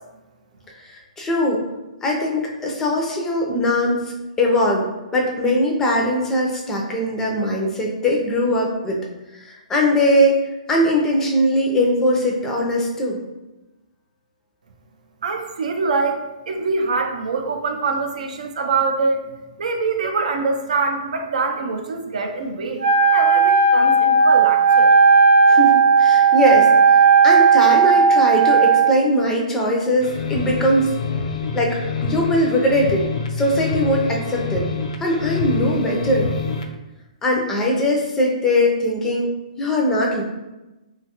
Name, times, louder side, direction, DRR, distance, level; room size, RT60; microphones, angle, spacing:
voice 1, 0.8-1.6 2.0-4.1 4.4-4.9 5.1-9.0 9.3-10.4 10.7-13.2 25.5-31.0 31.5-34.7 35.0-36.3 37.2-39.3 39.6-40.2, left 1 dB, 10° left, -1 dB, 0.4 m, -20 dB
voice 2, 15.2-19.2 19.6-24.9, right 4 dB, 70° right, 4 dB, 0.4 m, -24 dB
Wind instrument woodwind instrument, 22.8-29.0, right 5 dB, 40° right, 0.8 m, -14 dB
sound 1, 30.0-36.7, left 4 dB, 70° left, 0.4 m, -26 dB
2.8 x 2.3 x 2.8 m, 1.0 s
hypercardioid pair, 155°, 4 cm